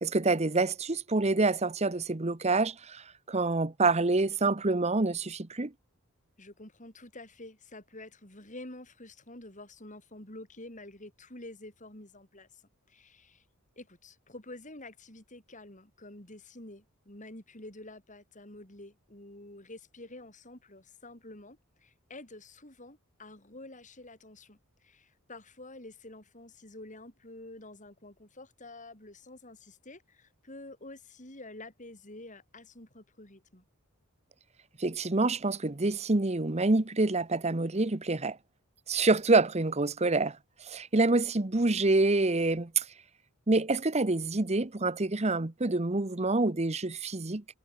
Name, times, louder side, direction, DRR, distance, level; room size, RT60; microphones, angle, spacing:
voice 1, 0.0-5.7 34.8-38.4 38.9-40.4 40.6-42.8 43.5-47.5, right 3 dB, 30° right, 1.0 m, -27 dB
voice 2, 6.4-12.6 12.9-13.4 13.8-33.6, left 2 dB, 35° left, 5.2 m, -48 dB
head